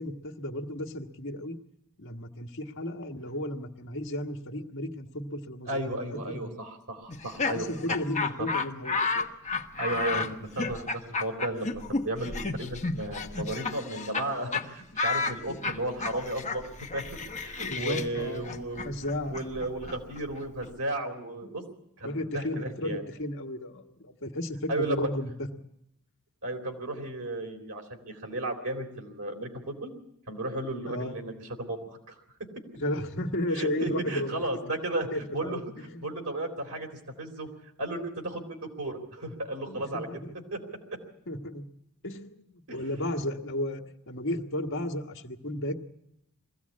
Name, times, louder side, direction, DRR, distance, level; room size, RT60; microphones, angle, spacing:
voice 1, 0.0-1.6 2.0-6.5 7.5-9.3 15.5-15.6 17.6-18.5 18.8-19.4 21.4-21.7 22.0-25.3 30.9-31.2 32.7-34.4 35.1-36.1 37.5-37.6 39.7-40.3 41.3-41.6 42.0-45.8, left 1 dB, 60° left, 3 dB, 1.6 m, -34 dB
voice 2, 5.7-7.7 8.4-8.5 9.8-18.8 19.3-21.6 22.0-23.0 24.7-25.1 26.4-29.9 30.3-32.1 33.5-36.9 37.2-37.5 37.8-40.1 40.5-40.6 42.7-42.8, right 1 dB, 75° right, 3 dB, 3.8 m, -34 dB
Laughter, 7.1-14.3 14.5-14.6 15.0-20.7, left 4 dB, 30° left, 1.2 m, -32 dB
22.0 x 16.0 x 8.5 m, 0.81 s
head